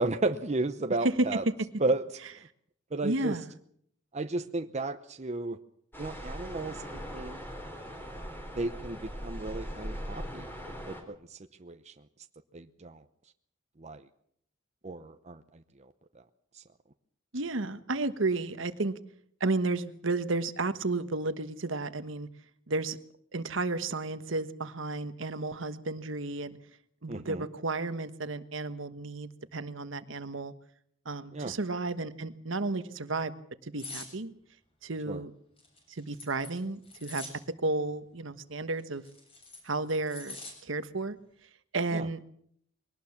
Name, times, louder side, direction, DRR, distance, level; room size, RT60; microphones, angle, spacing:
voice 1, 0.0-1.4 1.8-2.0 2.9-3.4 4.1-5.6 6.0-7.4 8.6-10.5 10.9-11.9 12.5-13.0 13.8-14.0 14.8-15.4 27.1-27.4 31.3-31.5 35.1-35.2 41.9-42.1, right 2 dB, 35° right, 8 dB, 0.8 m, -33 dB
voice 2, 1.0-1.4 3.0-3.5 17.3-18.9 19.4-22.3 22.7-23.0 23.3-26.6 27.0-30.5 31.0-33.3 33.6-34.3 34.8-35.3 35.9-37.2 37.6-39.0 39.6-40.4 40.6-41.2 41.7-42.2, right 2 dB, 70° right, 11 dB, 1.3 m, -32 dB
sound 1, 5.9-11.0, equal, 10° left, 4.2 m, -40 dB
sound 2, 33.8-34.1 35.6-37.4 38.8-40.5 40.9-41.2, left 3 dB, 30° left, 7.0 m, -44 dB
22.0 x 18.5 x 7.2 m, 0.68 s
head